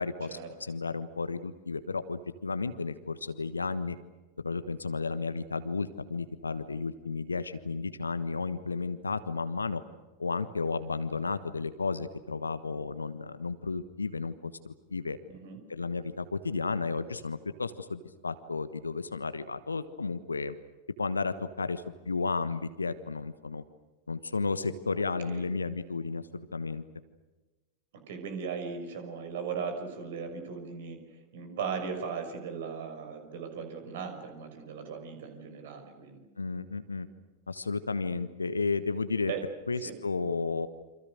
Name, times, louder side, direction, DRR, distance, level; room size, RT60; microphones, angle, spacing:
voice 1, 0.0-4.0 4.4-9.8 10.2-15.2 15.7-20.6 21.0-23.6 24.1-26.8 36.4-37.1 37.5-39.3 39.7-40.7, left 4 dB, 75° left, 13 dB, 1.3 m, -33 dB
voice 2, 24.9-25.5 28.1-36.3 39.3-39.4 39.8-40.0, right 6 dB, 55° right, 7 dB, 6.1 m, -38 dB
29.0 x 26.5 x 6.5 m, 1.2 s
figure-of-eight pair, 90°, 0 cm